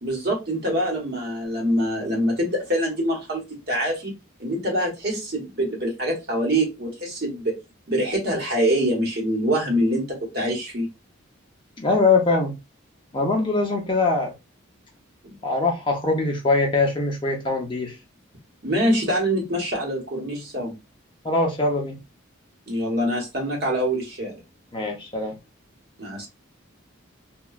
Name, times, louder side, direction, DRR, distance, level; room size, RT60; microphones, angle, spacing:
voice 1, 0.0-4.1 4.4-7.6 7.9-10.9 15.2-15.3 18.6-20.8 22.7-24.4 26.0-26.3, equal, 50° right, 1.1 m, -25 dB
voice 2, 11.8-12.6 13.1-14.3 15.4-18.0 21.2-22.0 24.7-25.4, left 3 dB, 25° left, 0.5 m, -22 dB
2.9 x 2.2 x 2.3 m
head